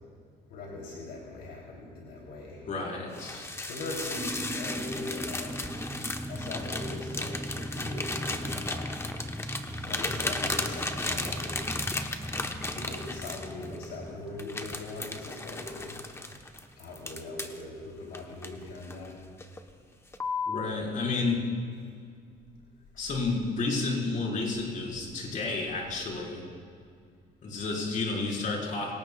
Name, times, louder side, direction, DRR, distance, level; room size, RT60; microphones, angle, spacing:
voice 1, 0.5-2.7 3.6-5.7 6.3-8.9 9.8-11.5 12.7-15.9 16.8-19.2 20.7-20.9 21.1-21.3, left 2 dB, 75° left, -3 dB, 3.4 m, -41 dB
voice 2, 2.7-3.5 20.5-21.4 23.0-26.4 27.4-28.9, left 3 dB, 50° left, -2 dB, 4.9 m, -31 dB
sound 1, 3.1-13.9 14.4-17.6 18.1-19.1 19.4-19.7 20.1-20.7, left 2 dB, 15° left, 1.1 m, -35 dB
sound 2, 4.1-16.5 16.8-16.9 17.1-17.4, equal, ahead, 0.7 m, -39 dB
26.5 x 19.5 x 2.4 m, 2.2 s
cardioid pair, 110°, 17 cm